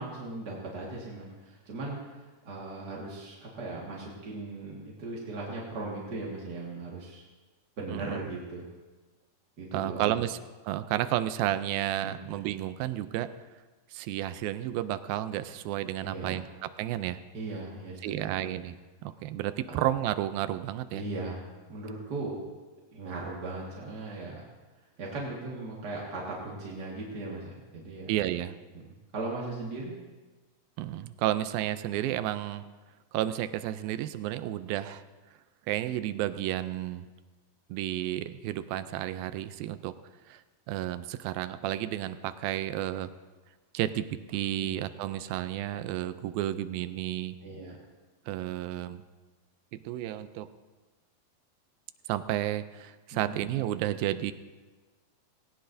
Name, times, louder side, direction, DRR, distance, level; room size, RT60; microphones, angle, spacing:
voice 1, 0.0-7.2 7.8-8.6 9.6-10.1 12.0-12.2 16.0-16.5 17.3-18.5 20.9-22.4 22.9-24.4 25.0-28.1 29.1-29.9 47.4-47.8 53.1-53.4, right 2 dB, 40° right, -4 dB, 1.4 m, -38 dB
voice 2, 7.9-8.3 9.7-10.4 10.6-13.3 13.9-17.2 18.0-18.7 19.0-21.1 28.1-28.6 30.8-32.7 33.1-35.0 35.7-37.1 37.7-40.0 40.3-40.4 40.7-43.1 43.7-47.4 48.3-49.0 49.7-50.5 52.1-54.3, right 13 dB, 80° right, 12 dB, 2.3 m, -32 dB
19.0 x 18.0 x 2.7 m, 1.3 s
omnidirectional pair, 4.3 m